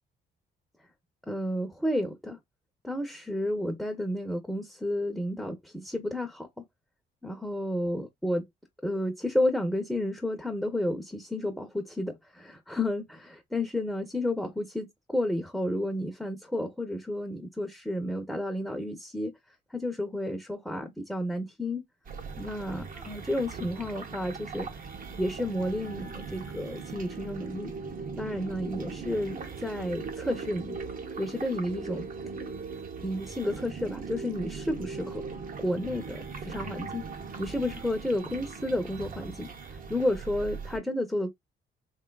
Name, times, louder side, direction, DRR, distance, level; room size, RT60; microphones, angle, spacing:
voice 1, 1.3-2.4 2.8-6.5 7.2-8.4 8.8-19.3 19.7-21.8 22.4-24.7 25.2-27.7 28.2-30.8 31.2-32.1 33.0-35.2 35.6-37.0 37.4-39.5 39.9-41.3, left 1 dB, ahead, 0.6 m, -31 dB
sound 1, 22.1-40.8, right 5 dB, 45° right, 0.6 m, -39 dB
3.0 x 2.3 x 2.2 m
cardioid pair, 90°, 20 cm